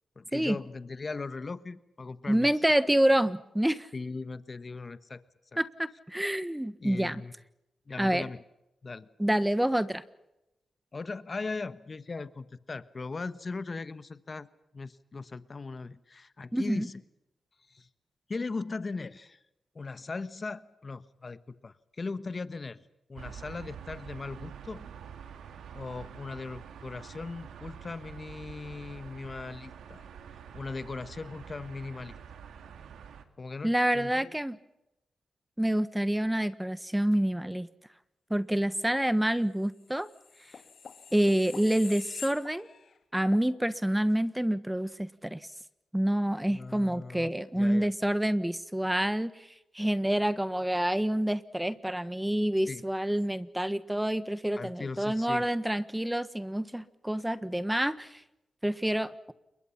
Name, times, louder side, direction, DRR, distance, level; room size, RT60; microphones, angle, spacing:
voice 1, 0.2-2.5 3.9-5.2 5.5-5.6 6.8-7.3 7.9-8.4 8.8-9.1 10.9-14.5 14.7-17.0 17.7-17.9 18.3-19.4 19.7-25.0 25.7-30.1 30.5-32.2 33.4-34.3 46.5-47.9 52.7-52.8 54.6-55.4, left 3 dB, 40° left, 14 dB, 1.2 m, -39 dB
voice 2, 2.3-3.9 5.6-7.2 8.0-8.3 9.2-10.0 16.5-16.9 33.6-34.6 35.6-37.7 38.3-40.1 41.1-42.7 43.1-45.4 45.9-49.5 49.7-58.2 58.6-59.3, right 1 dB, 10° right, 14 dB, 1.4 m, -27 dB
sound 1, 23.2-33.2, right 8 dB, 90° right, 2.2 m, -46 dB
sound 2, 40.0-42.9 43.3-43.5, left 6 dB, 65° left, 2.7 m, -45 dB
28.5 x 22.5 x 5.8 m, 0.89 s
cardioid pair, 65°, 0 cm